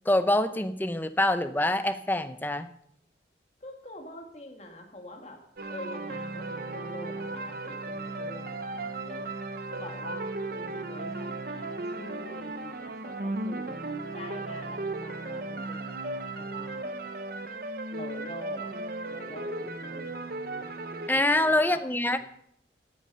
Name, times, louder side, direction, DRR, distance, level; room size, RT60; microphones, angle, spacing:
voice 1, 0.1-2.7 21.1-22.2, left 1 dB, 10° left, 10 dB, 0.6 m, -25 dB
voice 2, 3.6-5.4 5.7-9.3 9.7-16.9 17.9-18.7 19.1-20.1 21.1-22.2, left 1 dB, 35° left, 3 dB, 2.0 m, -45 dB
sound 1, 5.6-21.1, right 2 dB, 55° right, 0.8 m, -36 dB
13.5 x 8.7 x 5.5 m, 0.72 s
head